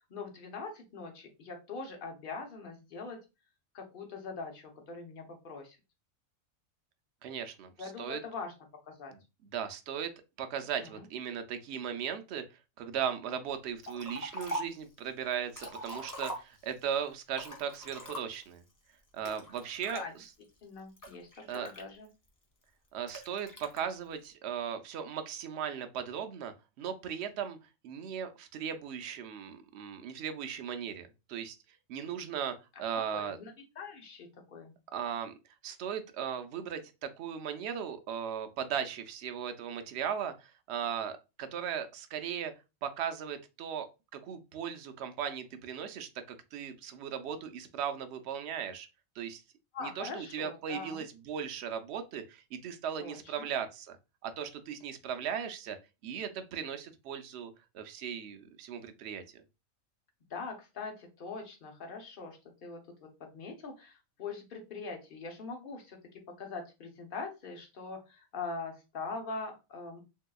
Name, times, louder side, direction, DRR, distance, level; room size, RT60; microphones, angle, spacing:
voice 1, 0.1-3.2 3.7-5.8 7.8-8.5 8.8-9.1 10.8-11.0 19.9-20.1 20.6-22.1 33.1-34.7 49.7-51.0 53.0-53.5 60.3-70.0, left 4 dB, 45° left, 2 dB, 0.9 m, -42 dB
voice 2, 7.2-8.2 9.5-10.1 10.4-12.4 12.8-18.6 19.1-20.0 21.5-21.7 22.9-27.6 27.8-31.6 31.9-33.4 34.9-35.3 35.6-42.5 42.8-43.9 44.1-48.9 49.2-49.4 49.8-54.0 54.2-55.8 56.0-59.4, right 8 dB, 65° right, 8 dB, 0.7 m, -37 dB
Liquid, 13.8-14.8 15.3-16.8 17.3-18.5 19.2-20.0 20.6-22.3 23.1-23.8, equal, 30° left, 0.3 m, -42 dB
3.7 x 2.7 x 2.2 m, 0.27 s
omnidirectional pair, 1.4 m